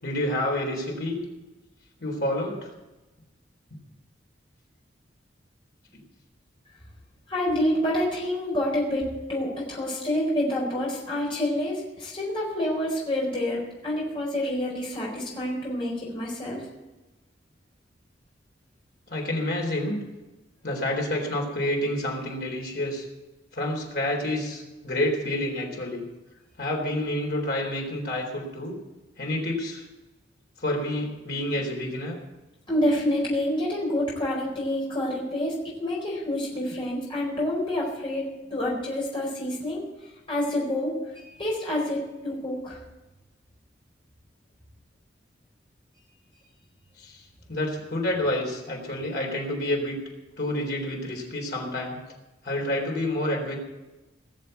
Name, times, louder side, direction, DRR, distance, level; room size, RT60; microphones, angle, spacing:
voice 1, 0.0-1.2 2.0-2.7 19.1-20.0 20.6-23.0 23.5-26.1 26.6-28.8 29.2-29.8 30.6-32.2 47.0-47.2 47.5-50.0 50.4-52.0 52.4-53.6, left 1 dB, 60° left, 0 dB, 3.9 m, -28 dB
voice 2, 7.3-16.7 32.7-39.8 40.3-42.8, left 1 dB, 30° left, -5 dB, 4.5 m, -28 dB
19.0 x 7.1 x 8.2 m, 1.1 s
head